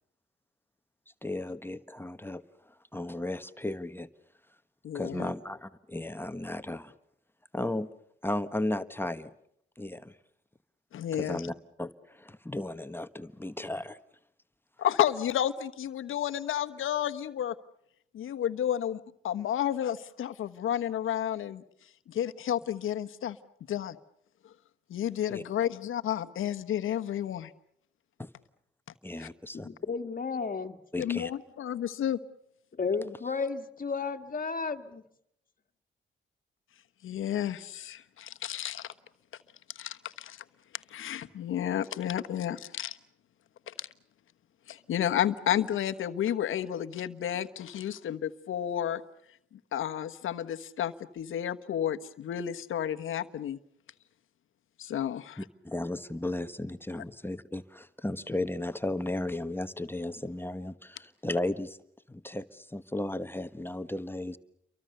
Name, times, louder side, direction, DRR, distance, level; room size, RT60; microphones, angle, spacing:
voice 1, 1.2-2.4 2.9-4.1 4.9-6.9 7.5-7.9 8.2-9.3 9.8-10.1 11.1-14.0 25.3-25.4 28.2-28.3 29.0-29.7 30.9-31.3 55.4-61.8 62.1-64.4, left 1 dB, 10° left, 1.3 m, -35 dB
voice 2, 4.8-5.3 10.9-11.4 14.8-17.5 18.1-21.6 22.1-23.4 23.7-24.0 24.9-27.5 29.2-29.3 31.0-32.2 37.0-38.9 39.7-40.4 40.9-43.0 43.8-43.9 44.7-49.0 49.7-53.6 54.8-55.4, left 10 dB, 75° left, 1.2 m, -31 dB
voice 3, 29.5-30.8 32.8-35.0, left 4 dB, 40° left, 1.9 m, -33 dB
30.0 x 23.5 x 6.7 m
supercardioid pair, 60°, 21 cm